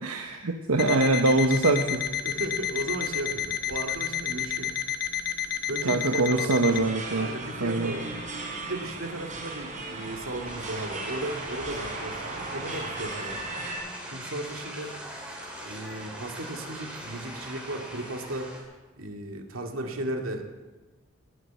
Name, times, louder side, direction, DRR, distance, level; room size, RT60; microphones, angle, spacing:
voice 1, 0.0-2.1 5.8-7.3 7.6-7.9, right 2 dB, 85° right, 3 dB, 1.2 m, -24 dB
Alarm, 0.8-6.8, left 9 dB, 45° left, 1.0 m, -31 dB
voice 2, 2.2-4.7 5.7-6.6 7.2-8.1 8.6-13.4 14.1-14.9 15.6-18.5 19.0-20.5, right 1 dB, 70° right, 3 dB, 2.4 m, -35 dB
sound 1, 6.6-13.8, right 2 dB, 35° right, 4.1 m, -37 dB
sound 2, 10.4-18.6, right 1 dB, 5° right, 3.3 m, -41 dB
19.0 x 8.0 x 9.3 m, 1.2 s
head